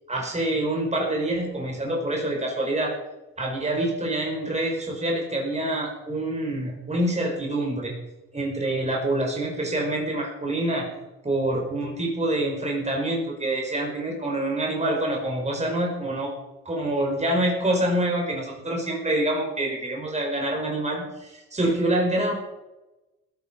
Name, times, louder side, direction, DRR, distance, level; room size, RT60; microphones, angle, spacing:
voice 1, 0.1-2.9 3.4-7.9 8.3-10.9 11.2-16.3 16.6-22.4, right 1 dB, 20° right, 0 dB, 5.0 m, -26 dB
16.5 x 13.5 x 5.3 m, 1.0 s
cardioid pair, 90°, 30 cm